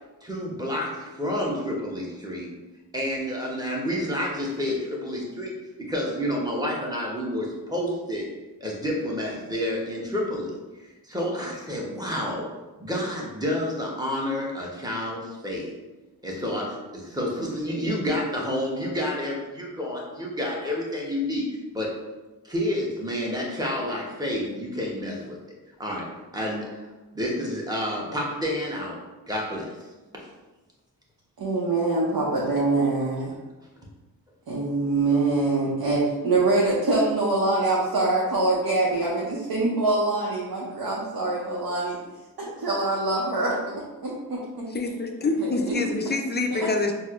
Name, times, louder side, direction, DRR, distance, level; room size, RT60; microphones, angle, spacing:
voice 1, 0.2-2.5 2.9-8.3 8.6-10.5 10.8-12.5 12.8-15.7 16.2-21.5 21.7-21.9 22.4-25.4 25.8-26.1 26.3-26.8 27.1-29.0 29.3-29.7 30.1-30.2, left 1 dB, 10° right, -3 dB, 0.9 m, -29 dB
voice 2, 31.4-33.3 34.5-42.0 42.4-43.7 44.0-45.0 45.4-45.9, right 2 dB, 60° right, -5 dB, 0.7 m, -24 dB
voice 3, 44.7-46.9, left 3 dB, 25° left, 4 dB, 0.4 m, -26 dB
4.1 x 2.0 x 2.4 m, 1.1 s
cardioid pair, 45°, 41 cm